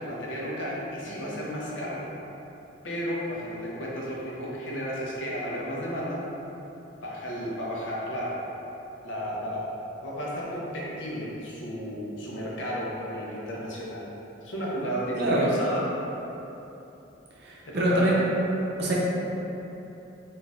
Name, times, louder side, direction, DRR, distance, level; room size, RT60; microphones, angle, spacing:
voice 1, 0.0-2.0 2.8-6.2 7.0-8.5 9.0-14.1 14.4-16.0 17.7-18.1, equal, 80° left, -5 dB, 0.7 m, -33 dB
voice 2, 15.2-15.5 17.4-18.3 18.8-18.9, right 1 dB, 60° right, -5 dB, 0.6 m, -24 dB
4.0 x 2.5 x 2.4 m, 3.0 s
head